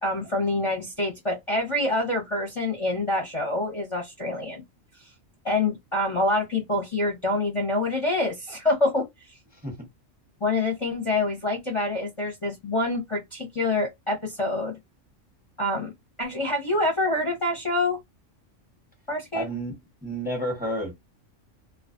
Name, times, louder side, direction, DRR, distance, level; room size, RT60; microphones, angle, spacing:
voice 1, 0.0-4.6 5.0-5.1 5.4-9.3 10.4-14.8 15.6-15.9 16.2-18.0 19.1-19.5, left 2 dB, 35° left, 0.6 m, -26 dB
voice 2, 19.3-19.8 20.0-20.9, equal, 10° right, 0.7 m, -30 dB
2.4 x 2.2 x 2.4 m
omnidirectional pair, 1.3 m